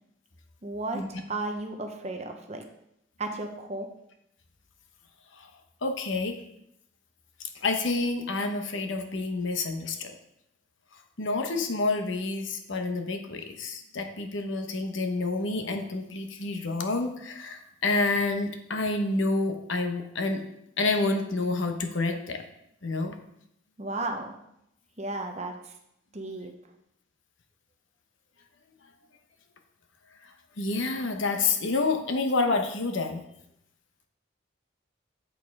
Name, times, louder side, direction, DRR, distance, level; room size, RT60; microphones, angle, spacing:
voice 1, 0.6-1.0 1.3-2.6 3.2-3.9 23.8-24.3 25.0-25.7 26.1-26.5, right 2 dB, 35° right, 4 dB, 0.8 m, -34 dB
voice 2, 5.8-6.4 7.4-10.1 10.9-20.4 20.8-22.4 22.8-23.2 30.2-33.2, left 3 dB, 70° left, 5 dB, 0.9 m, -28 dB
8.0 x 4.5 x 4.7 m, 0.78 s
head